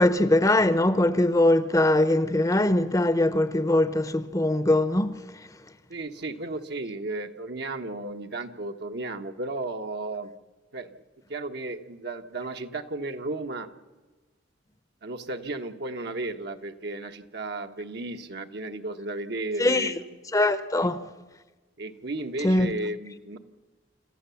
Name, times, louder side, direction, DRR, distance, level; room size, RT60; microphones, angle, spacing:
voice 1, 0.0-5.2 19.6-19.9 20.3-21.0 22.4-22.7, left 1 dB, 20° left, 0.8 m, -22 dB
voice 2, 5.9-10.3 10.7-11.0 11.3-13.7 15.0-20.2 20.7-20.9 21.8-23.4, right 2 dB, 60° right, 1.2 m, -34 dB
26.0 x 14.0 x 7.1 m
head